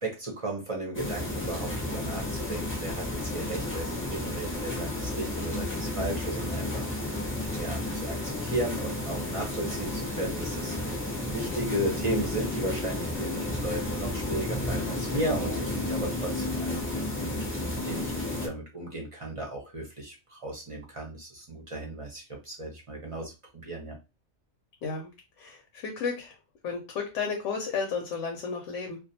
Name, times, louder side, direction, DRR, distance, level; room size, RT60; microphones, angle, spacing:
voice 1, 0.0-7.2 7.6-10.7 11.3-17.4 17.7-23.3 23.6-24.0, right 1 dB, 40° right, -1 dB, 0.5 m, -35 dB
sound 1, 0.9-18.5, left 1 dB, 20° left, 0.3 m, -32 dB
voice 2, 25.4-26.4 26.6-29.0, left 5 dB, 90° left, 3 dB, 0.9 m, -33 dB
2.3 x 2.2 x 2.6 m, 0.28 s
omnidirectional pair, 1.2 m